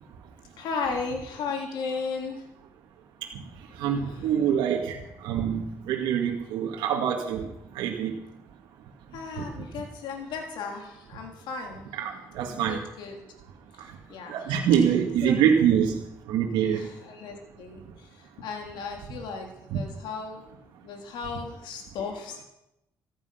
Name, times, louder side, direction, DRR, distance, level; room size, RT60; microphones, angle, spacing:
voice 1, 0.6-2.5 4.0-4.3 9.1-11.9 12.5-13.2 14.1-14.5 15.2-15.4 16.6-20.4 20.8-22.4, left 4 dB, 80° left, 2 dB, 3.4 m, -35 dB
voice 2, 3.7-8.1 9.4-9.6 11.9-12.8 13.8-14.0 14.3-16.8 19.7-19.8, right 8 dB, 85° right, 0 dB, 2.1 m, -25 dB
15.0 x 13.0 x 5.8 m, 0.86 s
supercardioid pair, 70°, 8 cm